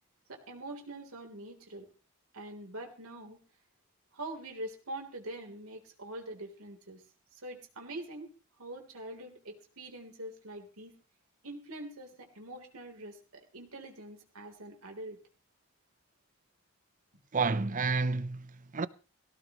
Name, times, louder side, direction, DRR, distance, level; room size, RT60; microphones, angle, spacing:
voice 1, 0.3-1.9 2.3-3.4 4.1-7.0 7.3-8.3 8.6-10.9 11.4-15.2, right 1 dB, 75° right, 3.5 m, -44 dB
voice 2, 17.3-18.9, right 4 dB, 35° right, 0.7 m, -30 dB
18.0 x 17.5 x 3.1 m
head